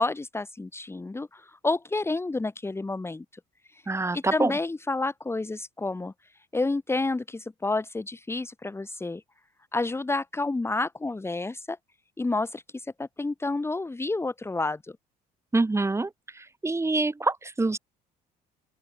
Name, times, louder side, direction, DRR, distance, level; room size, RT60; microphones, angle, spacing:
voice 1, 0.0-3.2 3.7-3.8 4.1-6.1 6.5-9.2 9.7-11.8 12.2-14.9, left 3 dB, 15° left, 2.6 m, -29 dB
voice 2, 3.9-4.5 15.5-16.1 16.6-17.8, right 3 dB, 15° right, 6.2 m, -25 dB
open air
cardioid pair, 110°, 17 cm